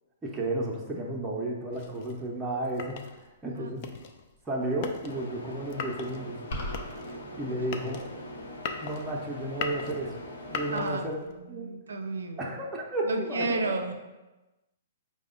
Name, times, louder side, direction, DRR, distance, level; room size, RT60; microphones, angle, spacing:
voice 1, 0.2-3.0 3.4-3.8 4.5-6.4 7.4-8.0 8.8-10.2 10.5-11.7 12.4-13.7, right 1 dB, 10° right, -4 dB, 0.6 m, -32 dB
sound 1, 1.7-11.4, left 5 dB, 45° left, 0.4 m, -40 dB
sound 2, 5.1-10.9, equal, 90° left, 0.8 m, -42 dB
sound 3, 6.5-7.0, left 1 dB, 65° left, 1.0 m, -34 dB
voice 2, 10.7-12.4 13.0-13.9, right 3 dB, 90° right, 6 dB, 0.4 m, -33 dB
4.7 x 2.1 x 3.7 m, 1.1 s
hypercardioid pair, 140°, 0 cm